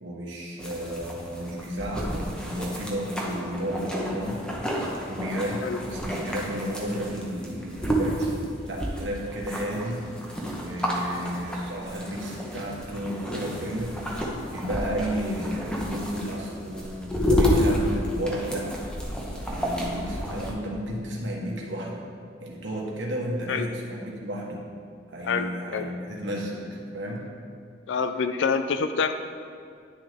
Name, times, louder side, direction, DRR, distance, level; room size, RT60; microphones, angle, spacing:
voice 1, 0.0-4.4 5.1-8.3 8.7-10.1 10.6-14.0 14.5-18.7 19.4-22.0 22.4-24.7 25.1-27.3, equal, 70° right, -2 dB, 1.3 m, -33 dB
sound 1, 0.6-20.5, equal, 5° left, 1.0 m, -30 dB
voice 2, 25.2-25.9 27.9-29.1, left 5 dB, 65° left, 9 dB, 0.4 m, -27 dB
9.9 x 6.5 x 3.5 m, 2.3 s
head